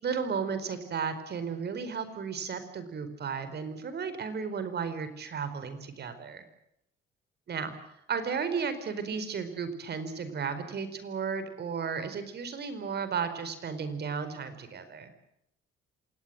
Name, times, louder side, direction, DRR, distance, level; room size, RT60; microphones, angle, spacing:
voice 1, 0.0-6.4 7.5-7.7 8.1-15.1, right 6 dB, 55° right, 11 dB, 4.7 m, -34 dB
27.0 x 19.5 x 7.8 m, 0.79 s
cardioid pair, 90°, 20 cm